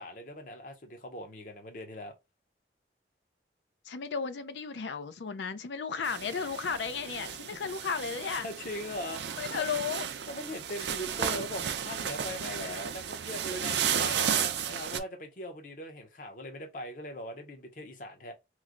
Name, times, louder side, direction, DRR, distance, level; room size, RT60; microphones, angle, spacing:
voice 1, 0.0-2.2 7.5-7.7 8.4-9.7 10.3-18.3, left 1 dB, 50° left, 0.8 m, -41 dB
voice 2, 3.8-8.5 9.4-10.1, left 6 dB, 80° left, 0.5 m, -34 dB
sound 1, 6.0-15.0, right 8 dB, 75° right, 0.5 m, -33 dB
3.1 x 2.1 x 3.7 m
head